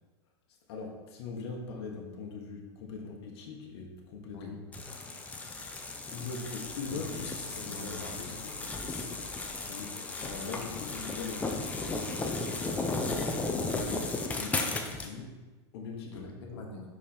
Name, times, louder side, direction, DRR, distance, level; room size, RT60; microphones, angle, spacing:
voice 1, 0.5-4.7 5.0-5.2 6.1-7.2 7.5-8.0 8.3-8.5 9.6-12.5 12.9-16.7, left 4 dB, 65° left, 0 dB, 1.2 m, -42 dB
sound 1, 4.7-15.1, left 3 dB, 10° left, 0.5 m, -35 dB
voice 2, 6.8-9.1 13.0-13.3 16.1-16.8, left 3 dB, 85° left, 0 dB, 1.2 m, -45 dB
5.3 x 4.9 x 4.3 m, 1.2 s
supercardioid pair, 145°, 14 cm